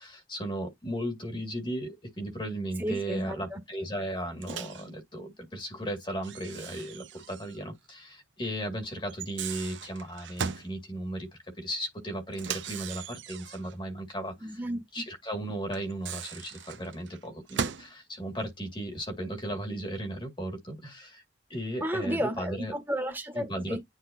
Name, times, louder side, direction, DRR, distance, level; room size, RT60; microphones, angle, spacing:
voice 1, 0.3-1.9 2.2-4.7 5.1-7.0 7.3-7.6 8.4-11.2 11.6-13.0 13.3-14.3 14.9-16.5 16.8-17.6 18.2-20.5 21.5-22.7 23.3-23.8, right 1 dB, 25° left, 2.1 m, -35 dB
voice 2, 2.8-3.4 14.4-14.8 21.8-23.8, equal, 10° right, 1.7 m, -32 dB
Microwave oven, 4.4-4.9 6.2-7.6 7.9-8.0 9.1-10.7 12.3-13.8 15.7-17.9, right 7 dB, 80° right, 0.7 m, -38 dB
9.9 x 3.6 x 2.8 m
head